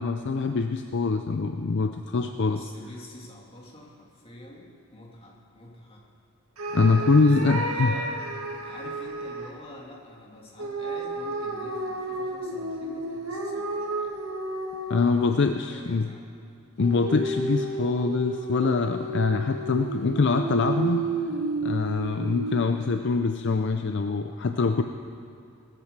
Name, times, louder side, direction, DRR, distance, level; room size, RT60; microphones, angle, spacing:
voice 1, 0.0-2.6 6.7-7.9 14.9-16.1 16.8-21.1 21.6-24.8, left 4 dB, 55° left, 7 dB, 0.5 m, -24 dB
voice 2, 2.4-6.0 6.9-14.1 14.8-16.2 19.2-19.7, left 1 dB, 25° left, -2 dB, 2.3 m, -47 dB
sound 1, 6.6-9.5 10.6-15.4 16.8-22.9, right 2 dB, 90° right, 2.1 m, -32 dB
20.0 x 9.0 x 6.6 m, 2.5 s
head